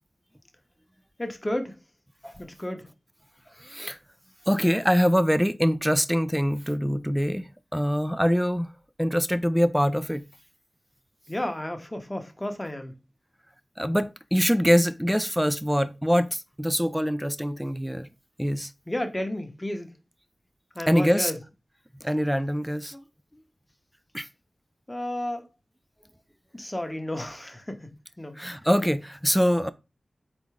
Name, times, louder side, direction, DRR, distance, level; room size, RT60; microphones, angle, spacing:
voice 1, 1.2-1.8 2.4-2.8 11.3-12.9 18.9-19.9 20.7-21.4 22.9-23.0 23.3-23.4 24.9-25.5 26.5-28.4, left 1 dB, 20° left, 0.9 m, -32 dB
voice 2, 3.6-4.0 4.5-8.7 9.0-10.2 13.8-18.1 18.4-18.7 20.9-21.3 22.0-22.9 24.1-24.3 28.4-29.7, equal, 5° right, 0.5 m, -24 dB
3.9 x 3.5 x 3.2 m
cardioid pair, 45°, 0 cm